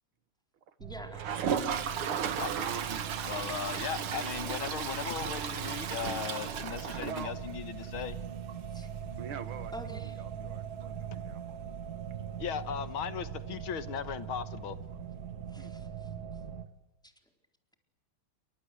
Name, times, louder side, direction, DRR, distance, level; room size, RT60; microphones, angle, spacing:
voice 1, 0.8-1.4 8.7-8.9 9.7-10.2 15.5-16.1 17.0-17.1, equal, ahead, 4 dB, 4.1 m, -46 dB
sound 1, 0.8-16.7, right 8 dB, 50° right, 1.8 m, -42 dB
Toilet flush, 1.1-7.9 8.2-8.3 8.5-8.6 8.8-8.9 11.5-11.6 12.9-13.0, right 7 dB, 90° right, 2.4 m, -35 dB
sound 2, 1.4-13.4, right 7 dB, 25° right, 1.7 m, -49 dB
voice 2, 2.5-3.0 7.0-7.3 9.2-9.7 10.0-11.4 15.6-15.7, right 7 dB, 75° right, 13 dB, 2.1 m, -43 dB
voice 3, 3.2-8.2 11.1-11.2 12.4-14.8, left 8 dB, 75° left, 13 dB, 2.0 m, -37 dB
28.5 x 25.5 x 8.0 m, 1.0 s
omnidirectional pair, 2.3 m